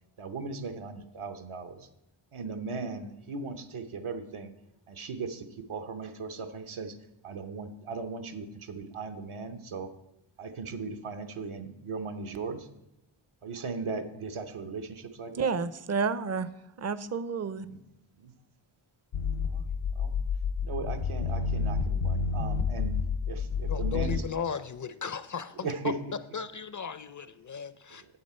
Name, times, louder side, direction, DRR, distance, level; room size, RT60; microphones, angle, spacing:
voice 1, 0.2-1.9 2.3-4.5 4.9-7.0 7.2-9.9 10.4-12.7 13.4-15.5 17.6-17.8 18.2-18.3 19.4-20.1 20.6-22.9 23.3-24.2 25.6-25.9 27.9-28.1, right 4 dB, 75° right, 0.9 m, -38 dB
voice 2, 15.3-16.5 16.8-17.7, right 5 dB, 35° right, 0.5 m, -30 dB
sound 1, 19.1-24.2, left 5 dB, 85° left, 0.6 m, -29 dB
voice 3, 23.7-25.7 26.3-28.0, left 6 dB, 40° left, 0.5 m, -36 dB
9.7 x 7.4 x 4.3 m
cardioid pair, 60°, 49 cm